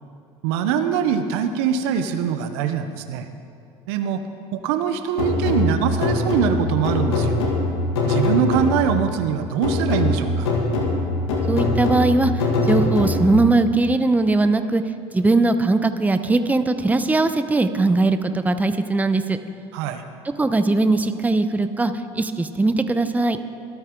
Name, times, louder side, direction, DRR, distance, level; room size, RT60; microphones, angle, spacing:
voice 1, 0.4-3.3 3.9-4.2 4.5-7.4 8.0-10.5 19.7-20.0, right 8 dB, 80° right, 8 dB, 0.9 m, -23 dB
sound 1, 5.2-9.1 9.6-13.5, left 2 dB, 90° left, 2.3 m, -22 dB
voice 2, 11.5-12.3 12.7-14.8 15.1-19.4 20.4-23.4, right 2 dB, 10° right, 10 dB, 0.8 m, -20 dB
25.0 x 9.1 x 3.8 m, 2.5 s
supercardioid pair, 90°, 14 cm